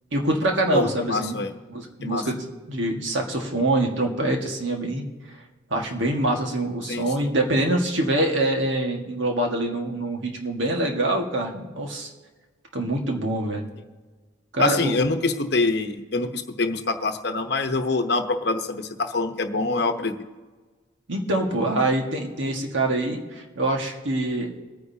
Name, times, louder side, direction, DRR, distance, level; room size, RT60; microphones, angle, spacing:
voice 1, 0.1-1.4 1.7-5.0 5.7-12.1 12.7-13.7 14.5-15.0 21.1-24.5, right 1 dB, 70° right, 1 dB, 1.7 m, -25 dB
voice 2, 0.7-1.5 2.0-2.2 6.9-7.0 14.6-20.1, left 3 dB, 55° left, 6 dB, 0.9 m, -25 dB
25.5 x 9.7 x 2.8 m, 1.4 s
head